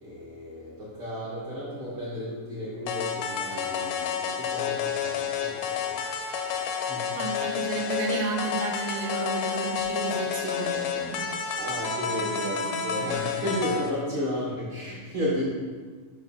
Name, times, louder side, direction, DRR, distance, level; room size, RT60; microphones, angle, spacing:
voice 1, 0.0-7.3 11.6-15.4, equal, 65° right, -9 dB, 1.2 m, -33 dB
sound 1, 2.9-13.9, left 7 dB, 85° left, 2.1 m, -30 dB
voice 2, 7.1-11.3 12.4-12.8, right 5 dB, 80° right, 2 dB, 2.9 m, -32 dB
6.8 x 5.1 x 4.1 m, 1.5 s
omnidirectional pair, 4.8 m